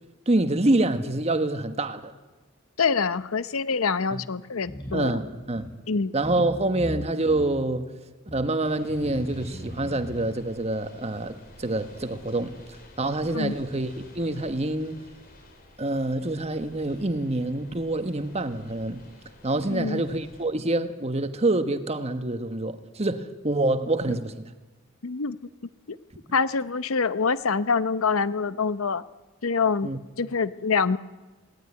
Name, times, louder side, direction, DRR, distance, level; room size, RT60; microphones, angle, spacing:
voice 1, 0.3-2.1 4.1-4.2 4.9-5.7 6.1-7.9 8.3-12.6 13.0-15.1 15.8-19.0 19.4-24.5 29.8-30.0, right 2 dB, 30° right, 1.3 m, -26 dB
voice 2, 2.8-5.2 5.9-6.1 13.3-13.5 19.7-20.0 25.0-25.4 25.9-26.0 26.3-29.0 29.4-29.9 30.2-31.0, left 5 dB, 80° left, 0.8 m, -25 dB
sound 1, 4.6-5.1 5.6-5.7 6.2-6.5 6.7-7.5 8.3-8.4 8.9-10.1, equal, 20° left, 7.5 m, -37 dB
sound 2, 8.6-20.4, left 1 dB, 45° left, 5.0 m, -51 dB
21.5 x 18.0 x 9.7 m
head